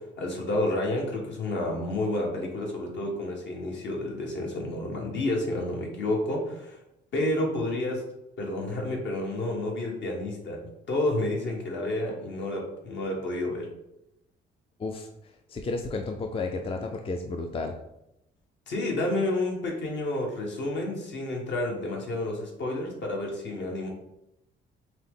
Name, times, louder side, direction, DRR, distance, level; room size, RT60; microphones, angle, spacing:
voice 1, 0.0-6.8 7.1-8.1 8.4-13.7 18.7-23.9, left 1 dB, 65° left, -1 dB, 1.3 m, -30 dB
voice 2, 15.5-17.8, left 3 dB, 30° left, 4 dB, 0.4 m, -32 dB
5.7 x 2.0 x 3.7 m, 0.86 s
cardioid pair, 90°, 20 cm